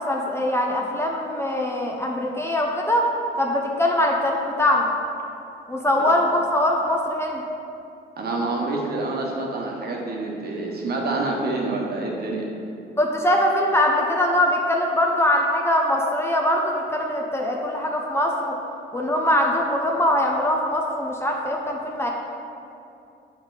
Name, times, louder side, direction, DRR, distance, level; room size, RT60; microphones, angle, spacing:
voice 1, 0.0-3.1 3.4-4.9 5.7-7.4 13.0-18.6 18.9-22.1, left 1 dB, 15° left, -1 dB, 0.6 m, -22 dB
voice 2, 8.2-12.4, right 2 dB, 55° right, -1 dB, 1.1 m, -27 dB
6.9 x 3.8 x 4.0 m, 2.7 s
cardioid pair, 90°, 20 cm